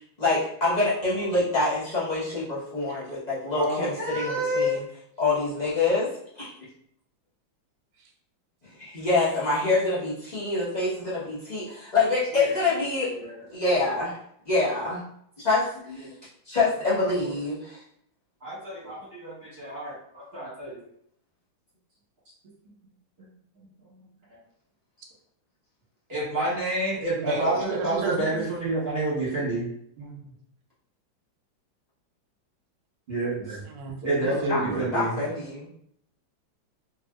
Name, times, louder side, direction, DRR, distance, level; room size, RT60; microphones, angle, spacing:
voice 1, 0.2-4.8 5.2-6.1 6.3-6.5 8.8-13.1 13.5-14.2 14.5-15.0 15.4-16.1 16.5-17.8 34.4-35.7, left 3 dB, 35° left, -10 dB, 0.6 m, -26 dB
voice 2, 1.0-1.4 3.5-4.8 12.3-12.6 13.0-13.4 18.4-20.8 23.9-24.0 26.1-29.7 30.0-30.2 33.1-33.6 34.0-35.2, right 1 dB, 35° right, -8 dB, 1.2 m, -29 dB
voice 3, 27.2-28.4 33.7-34.8, right 4 dB, 75° right, 2 dB, 1.2 m, -33 dB
3.2 x 2.7 x 2.3 m, 0.69 s
omnidirectional pair, 2.2 m